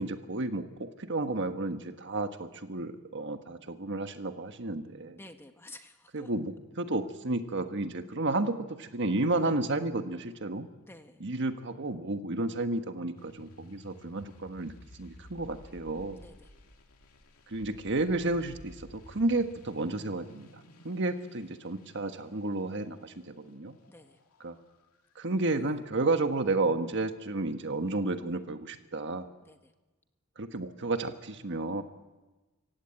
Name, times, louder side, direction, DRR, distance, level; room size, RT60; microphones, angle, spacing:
voice 1, 0.0-5.2 6.1-10.7 11.2-16.2 17.5-23.8 24.4-24.6 25.1-29.2 30.4-31.8, right 2 dB, 55° right, 8 dB, 1.3 m, -32 dB
voice 2, 5.2-6.3 10.8-11.3 16.2-16.5 23.9-24.2 29.4-29.7, left 2 dB, 10° left, 7 dB, 1.2 m, -51 dB
sound 1, 13.2-25.6, left 1 dB, 85° left, 2.3 m, -54 dB
24.5 x 16.0 x 8.7 m, 1.2 s
head